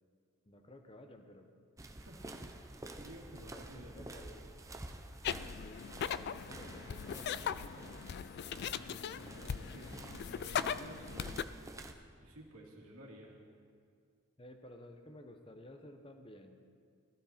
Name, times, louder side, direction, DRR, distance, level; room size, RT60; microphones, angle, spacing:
voice 1, 0.5-1.5 2.2-2.5 3.3-4.5 5.5-8.0 14.4-16.6, left 1 dB, 25° left, 6 dB, 0.9 m, -54 dB
sound 1, 1.8-11.9, right 2 dB, 15° right, 0.6 m, -50 dB
voice 2, 1.9-2.3 3.0-4.1 8.6-11.5 12.2-13.4, right 1 dB, 85° right, -1 dB, 2.2 m, -53 dB
sound 2, 5.2-11.4, left 8 dB, 50° left, 0.3 m, -39 dB
14.5 x 13.5 x 4.3 m, 2.2 s
head